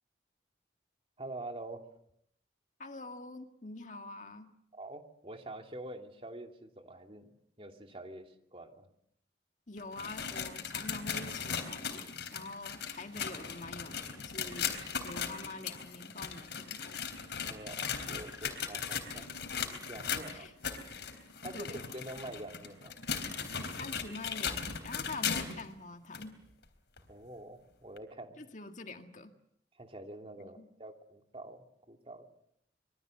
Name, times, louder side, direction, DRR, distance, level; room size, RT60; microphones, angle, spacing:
voice 1, 1.2-1.8 4.7-7.3 7.6-8.9 17.5-19.3 19.8-20.5 21.4-22.9 27.1-28.4 29.8-32.3, right 1 dB, 35° right, 4 dB, 2.7 m, -46 dB
voice 2, 2.8-4.5 9.7-14.8 15.0-17.0 20.0-20.5 21.5-21.8 23.4-26.4 28.4-29.3 30.4-30.7, left 3 dB, 45° left, 6 dB, 1.9 m, -45 dB
sound 1, 9.8-25.7 26.1-26.3 27.0-27.1 28.0-28.1, left 6 dB, 75° left, 3.6 m, -38 dB
26.0 x 23.0 x 7.9 m, 0.72 s
head